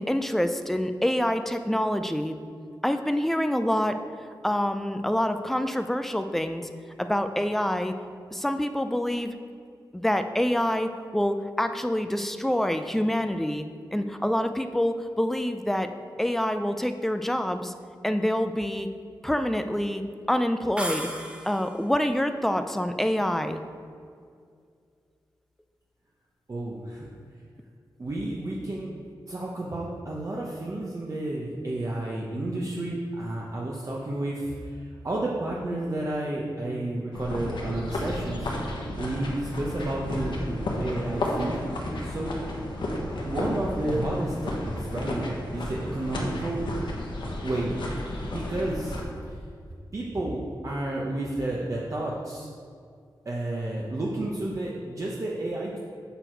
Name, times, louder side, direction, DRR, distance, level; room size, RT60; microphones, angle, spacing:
voice 1, 0.0-2.4 2.8-4.0 4.4-6.7 7.0-7.9 8.3-9.3 9.9-13.6 13.9-15.9 16.2-17.7 18.0-18.9 19.2-20.0 20.3-21.1 21.4-23.6, left 1 dB, 5° left, 8 dB, 0.4 m, -26 dB
sound 1, 20.8-21.9, right 1 dB, 15° right, 0.8 m, -34 dB
voice 2, 26.5-27.1 28.0-28.9 29.3-38.5 39.0-41.6 42.0-42.4 43.3-46.7 47.4-47.8 48.1-49.0 49.3-49.4 49.9-52.5 53.2-55.8, right 1 dB, 45° right, -4 dB, 0.9 m, -31 dB
sound 2, 37.1-49.0, left 1 dB, 85° left, 1.2 m, -32 dB
7.0 x 6.0 x 4.5 m, 2.2 s
wide cardioid pair, 85°, 8 cm